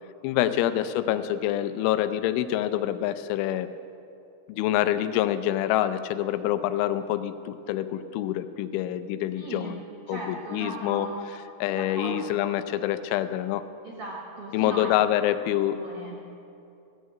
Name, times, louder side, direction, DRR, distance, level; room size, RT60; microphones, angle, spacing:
voice 1, 0.2-3.7 4.5-9.8 10.1-11.1 11.6-13.6 14.5-15.8, left 12 dB, 85° left, 12 dB, 3.0 m, -26 dB
voice 2, 9.4-9.8 10.1-11.2 11.7-12.2 13.8-14.9 15.2-15.3 15.7-16.1, right 2 dB, 70° right, -2 dB, 1.4 m, -37 dB
16.0 x 6.4 x 9.1 m, 2.7 s
omnidirectional pair, 5.5 m